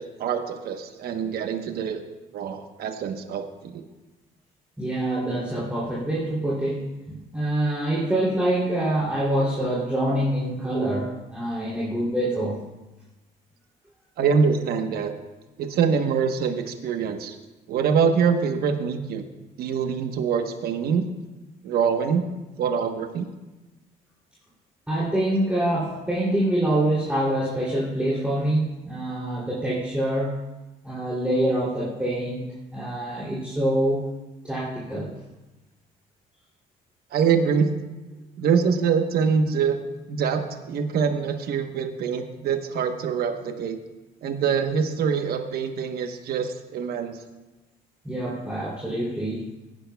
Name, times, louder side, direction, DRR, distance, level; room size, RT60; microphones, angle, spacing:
voice 1, 0.0-2.0 2.3-3.8 14.2-15.1 15.6-17.4 17.7-19.2 19.6-21.1 21.6-22.3 22.6-23.3 37.1-37.7 38.4-39.8 40.1-43.8 44.2-47.2, right 6 dB, 65° right, 6 dB, 1.1 m, -24 dB
voice 2, 4.8-12.6 24.9-30.4 30.8-34.1 34.4-35.1 48.0-49.5, right 1 dB, 5° right, -8 dB, 2.9 m, -25 dB
22.5 x 10.5 x 2.3 m, 1.1 s
cardioid pair, 110°, 17 cm